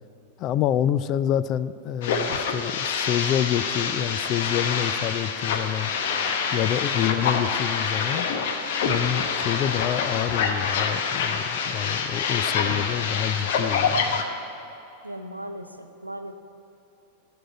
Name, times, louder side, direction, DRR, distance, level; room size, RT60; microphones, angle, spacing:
voice 1, 0.4-5.9 6.5-8.3 8.8-14.2, left 11 dB, 35° left, 16 dB, 0.3 m, -27 dB
sound 1, 2.0-14.2, left 5 dB, 55° left, 0.9 m, -26 dB
voice 2, 8.8-9.3 15.0-16.3, right 1 dB, 85° right, 8 dB, 0.6 m, -38 dB
11.0 x 6.1 x 8.6 m, 2.9 s
figure-of-eight pair, 90°, 0 cm